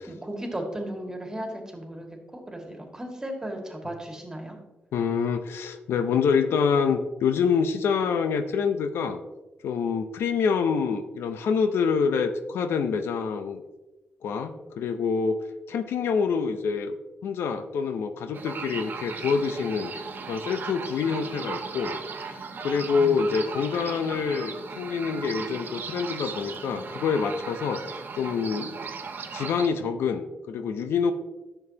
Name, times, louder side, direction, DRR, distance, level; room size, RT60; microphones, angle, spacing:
voice 1, 0.1-4.6 23.0-23.3, right 1 dB, 15° right, 2 dB, 2.0 m, -36 dB
voice 2, 4.9-9.2 9.6-13.6 14.2-17.0 17.2-19.9 20.3-21.9 22.3-28.7 29.3-31.1, left 6 dB, 85° left, 8 dB, 0.6 m, -26 dB
sound 1, 18.3-29.7, right 5 dB, 55° right, 0.9 m, -37 dB
10.5 x 6.9 x 2.8 m, 1.1 s
cardioid pair, 85°, 4 cm